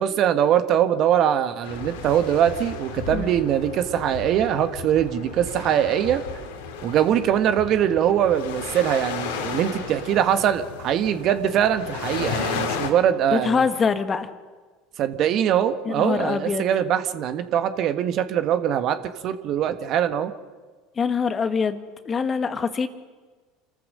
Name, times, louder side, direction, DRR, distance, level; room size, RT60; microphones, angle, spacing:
voice 1, 0.0-6.2 6.8-13.6 15.0-20.3, right 10 dB, 50° right, 9 dB, 1.4 m, -22 dB
sound 1, 1.6-12.9, left 5 dB, 75° left, 2.6 m, -34 dB
voice 2, 13.3-14.3 15.8-16.7 21.0-22.9, left 5 dB, 30° left, 9 dB, 1.5 m, -24 dB
28.5 x 14.0 x 6.4 m, 1.4 s
hypercardioid pair, 75°, 0 cm